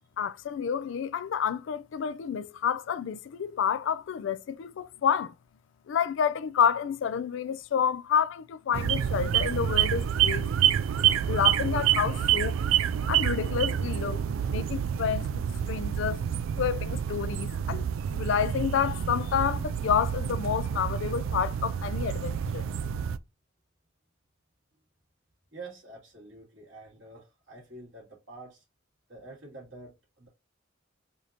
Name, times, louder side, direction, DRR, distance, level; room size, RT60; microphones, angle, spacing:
voice 1, 0.2-5.3 5.9-10.5 11.3-12.6 13.1-14.2 14.5-15.4 15.7-16.2 16.6-17.8 18.1-22.6, left 7 dB, 65° left, 0.3 m, -29 dB
sound 1, 8.7-23.2, right 9 dB, 85° right, 0.3 m, -28 dB
voice 2, 25.5-28.6 29.1-30.3, right 2 dB, 70° right, 2.7 m, -47 dB
4.9 x 2.6 x 2.8 m
head